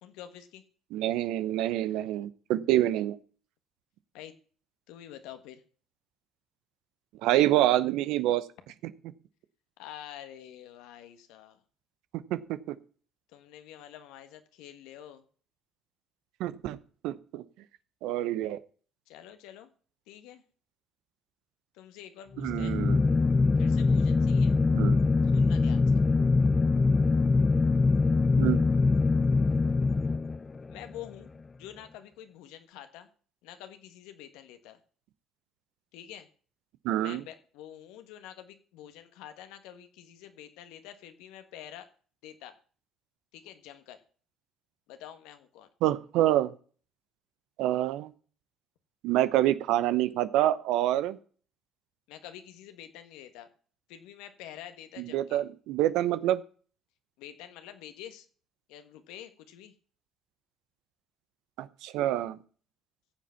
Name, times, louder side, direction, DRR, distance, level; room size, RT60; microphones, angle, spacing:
voice 1, 0.0-0.6 4.1-4.3 4.9-5.6 9.8-11.6 13.3-15.2 19.1-19.7 20.1-20.4 21.7-22.8 23.6-24.6 25.3-26.0 30.7-31.3 31.6-33.1 33.4-34.8 35.9-36.3 37.0-41.9 42.2-42.6 43.3-44.0 44.9-45.7 52.1-53.5 53.9-55.4 57.2-58.3 58.7-59.7, left 11 dB, 80° left, 9 dB, 1.5 m, -47 dB
voice 2, 0.9-3.2 7.2-8.4 12.3-12.7 16.4-16.8 17.0-17.4 18.0-18.6 22.4-23.0 24.7-25.0 28.4-28.6 36.8-37.2 45.8-46.5 47.6-48.1 49.0-51.2 55.0-56.4 61.6-62.4, right 14 dB, 75° right, 14 dB, 0.9 m, -27 dB
sound 1, 22.4-30.7, left 3 dB, 30° left, 0.6 m, -23 dB
15.0 x 7.5 x 5.8 m, 0.43 s
supercardioid pair, 65°, 0 cm